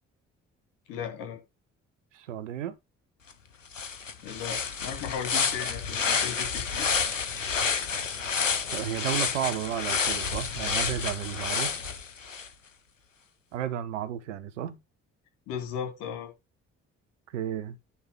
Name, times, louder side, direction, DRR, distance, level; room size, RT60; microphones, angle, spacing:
voice 1, 0.9-1.4 4.2-7.0 15.5-16.3, left 8 dB, 65° left, 2.7 m, -36 dB
voice 2, 2.1-2.8 8.7-11.7 13.5-14.8 17.3-17.8, right 10 dB, 75° right, 1.0 m, -33 dB
sound 1, 3.3-3.4 3.7-12.5, left 5 dB, 90° left, 0.7 m, -29 dB
10.0 x 3.7 x 6.0 m
figure-of-eight pair, 45°, 37 cm